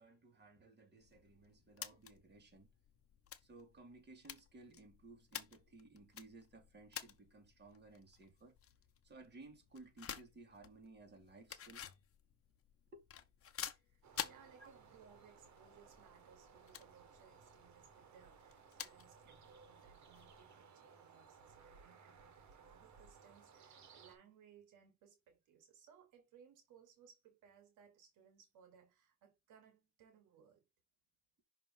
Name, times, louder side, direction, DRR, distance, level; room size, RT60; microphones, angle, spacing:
voice 1, 0.0-2.7 3.4-8.5 9.0-11.9 12.9-13.0 14.6-14.7, right 3 dB, 35° right, 2.6 m, -58 dB
sound 1, 1.0-20.5, left 9 dB, 50° left, 0.9 m, -52 dB
voice 2, 13.7-30.6, right 7 dB, 90° right, 1.6 m, -65 dB
sound 2, 14.0-24.2, right 6 dB, 65° right, 1.8 m, -62 dB
5.9 x 3.3 x 5.5 m
cardioid pair, 90°, 30 cm